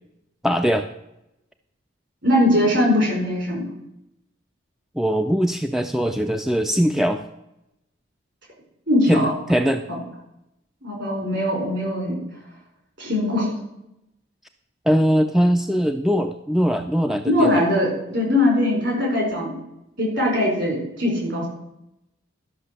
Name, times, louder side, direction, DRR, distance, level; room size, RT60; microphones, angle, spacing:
voice 1, 0.4-0.9 5.0-7.2 9.1-9.8 14.9-17.6, equal, ahead, 7 dB, 0.4 m, -21 dB
voice 2, 2.2-3.7 8.9-9.3 9.9-10.0 10.8-12.2 13.0-13.5 17.3-19.5 20.0-21.5, left 1 dB, 55° right, -1 dB, 4.7 m, -21 dB
12.0 x 6.0 x 6.7 m, 0.86 s
head